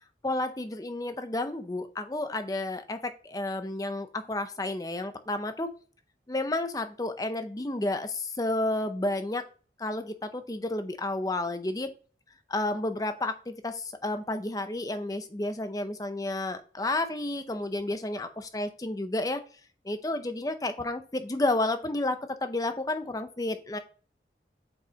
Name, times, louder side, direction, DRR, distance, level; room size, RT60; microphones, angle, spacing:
voice 1, 0.2-5.7 6.3-9.4 9.8-11.9 12.5-19.4 19.8-23.8, left 2 dB, 20° left, 8 dB, 0.6 m, -31 dB
8.6 x 4.7 x 2.9 m, 0.40 s
head